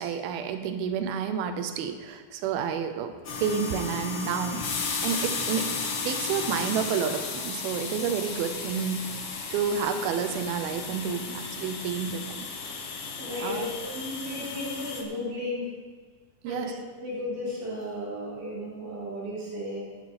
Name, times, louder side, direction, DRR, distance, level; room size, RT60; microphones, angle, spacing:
voice 1, 0.0-4.6 5.0-9.1 9.5-12.5 13.4-13.7 16.4-16.7, right 7 dB, 85° right, 9 dB, 2.7 m, -30 dB
sound 1, 3.2-15.0, left 4 dB, 65° left, 1.2 m, -34 dB
voice 2, 13.2-15.7 16.4-16.7 17.0-19.8, left 1 dB, 60° right, -6 dB, 5.0 m, -34 dB
12.5 x 12.0 x 4.3 m, 1.5 s
omnidirectional pair, 4.2 m